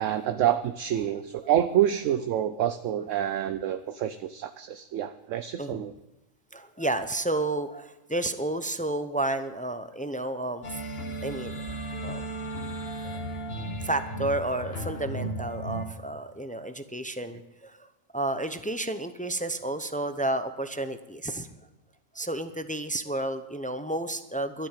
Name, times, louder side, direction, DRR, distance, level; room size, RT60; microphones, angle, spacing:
voice 1, 0.0-5.9, right 11 dB, 70° right, 10 dB, 0.9 m, -27 dB
voice 2, 6.5-10.8 11.2-11.8 12.0-12.5 13.0-13.2 13.5-21.5 22.1-24.7, right 2 dB, 10° left, 10 dB, 0.3 m, -31 dB
sound 1, 10.6-15.9, right 1 dB, 50° left, 1.6 m, -35 dB
12.0 x 11.0 x 7.3 m, 1.0 s
omnidirectional pair, 1.4 m